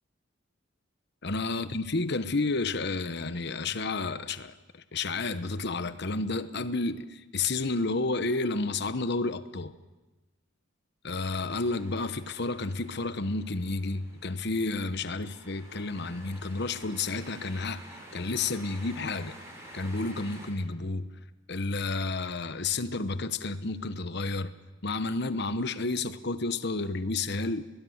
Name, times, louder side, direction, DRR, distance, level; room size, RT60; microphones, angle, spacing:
voice 1, 1.2-9.7 11.0-17.8 18.1-19.4 19.7-21.1 21.5-24.5 24.8-27.6, left 3 dB, 55° left, 12 dB, 1.1 m, -31 dB
sound 1, 11.2-20.5, equal, 15° right, 7.1 m, -50 dB
22.0 x 20.5 x 8.0 m, 1.2 s
head